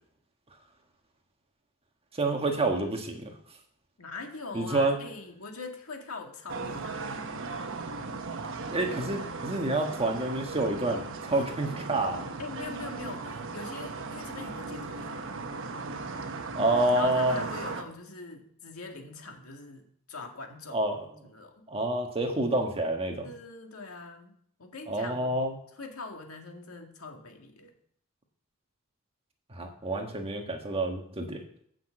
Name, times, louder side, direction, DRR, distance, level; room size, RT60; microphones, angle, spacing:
voice 1, 2.1-3.3 4.5-5.0 8.7-12.2 16.5-17.4 20.7-21.1 21.7-23.2 24.9-25.5 29.5-31.4, right 2 dB, 25° right, 3 dB, 1.5 m, -28 dB
voice 2, 4.0-7.2 11.3-11.4 12.4-15.3 16.9-20.8 21.2-21.7 23.2-25.4 25.8-27.7, left 3 dB, 75° left, 3 dB, 1.9 m, -42 dB
sound 1, 6.5-17.8, right 3 dB, 65° right, 1.0 m, -37 dB
8.9 x 6.1 x 7.7 m, 0.66 s
head